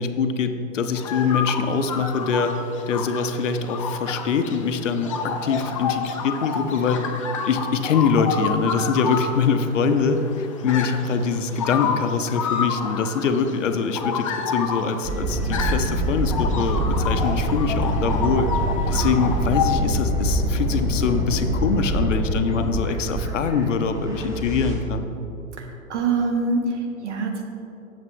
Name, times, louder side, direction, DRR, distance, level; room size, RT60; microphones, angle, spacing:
voice 1, 0.0-2.5 2.9-7.1 7.4-18.5 18.9-25.1, left 5 dB, 65° left, 8 dB, 0.6 m, -24 dB
sound 1, 0.9-19.7, left 6 dB, 25° left, 0.3 m, -29 dB
sound 2, 15.0-24.7, right 1 dB, 10° right, 0.8 m, -25 dB
voice 2, 25.6-27.4, right 3 dB, 55° right, 3 dB, 1.1 m, -25 dB
7.7 x 7.2 x 3.1 m, 2.9 s
figure-of-eight pair, 105°, 41 cm